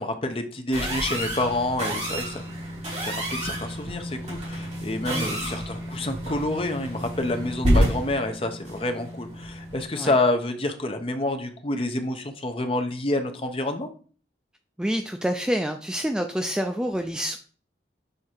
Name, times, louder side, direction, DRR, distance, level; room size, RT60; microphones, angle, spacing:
voice 1, 0.0-2.4 3.0-13.9, left 2 dB, 30° left, 6 dB, 0.7 m, -28 dB
sound 1, 0.7-9.8, equal, 35° right, 3.0 m, -29 dB
voice 2, 14.8-17.4, equal, 5° right, 5 dB, 0.3 m, -27 dB
6.5 x 3.6 x 4.4 m, 0.42 s
head